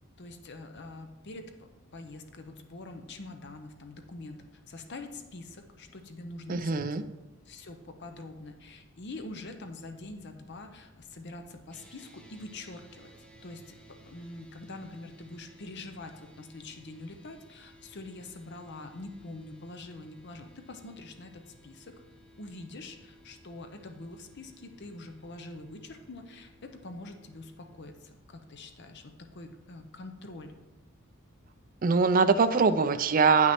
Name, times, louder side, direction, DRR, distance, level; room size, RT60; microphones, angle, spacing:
voice 1, 0.2-6.9 7.5-13.1 13.4-13.8 14.0-21.9 22.4-30.5, left 2 dB, 55° left, 6 dB, 0.7 m, -45 dB
voice 2, 6.5-7.0 31.8-33.5, right 5 dB, 40° right, 9 dB, 0.4 m, -23 dB
sound 1, 11.7-27.8, equal, 5° left, 0.9 m, -58 dB
9.3 x 6.0 x 4.3 m, 1.0 s
head